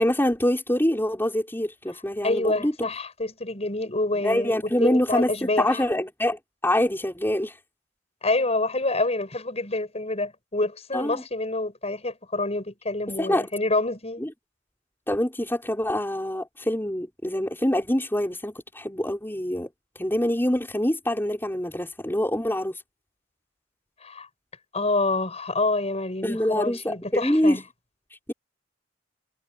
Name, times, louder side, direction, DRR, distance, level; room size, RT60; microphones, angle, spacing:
voice 1, 0.0-2.7 4.2-7.5 10.9-11.2 13.2-13.5 14.2-14.3 15.1-19.7 20.0-22.8 26.2-27.6, left 1 dB, 10° left, 5.6 m, -25 dB
voice 2, 2.2-5.8 8.2-14.2 24.0-24.3 24.7-27.6, left 2 dB, 35° left, 7.0 m, -27 dB
head